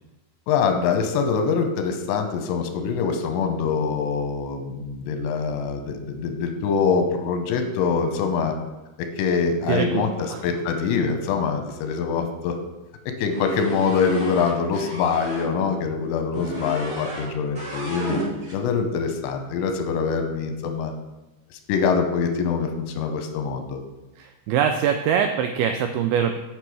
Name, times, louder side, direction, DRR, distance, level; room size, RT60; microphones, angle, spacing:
voice 1, 0.5-8.6 9.0-12.6 13.2-18.2 18.5-20.9 21.7-23.8, left 5 dB, 90° left, 6 dB, 3.2 m, -24 dB
voice 2, 9.7-10.4 24.2-26.4, right 8 dB, 85° right, 7 dB, 2.2 m, -23 dB
sound 1, 13.3-15.5 16.3-17.3 17.5-18.6, right 1 dB, 45° right, 1.1 m, -33 dB
8.8 x 6.1 x 4.8 m, 1.1 s
omnidirectional pair, 5.0 m